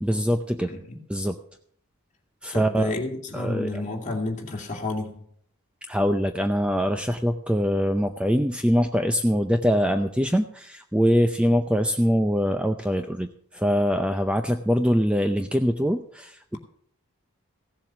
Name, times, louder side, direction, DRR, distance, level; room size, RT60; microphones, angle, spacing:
voice 1, 0.0-0.7 1.1-1.4 2.4-2.9 3.3-3.8 5.9-16.6, equal, 5° right, 6 dB, 0.5 m, -23 dB
voice 2, 0.7-1.0 2.5-5.3, left 2 dB, 35° left, 0 dB, 2.5 m, -31 dB
16.0 x 7.5 x 6.1 m, 0.64 s
head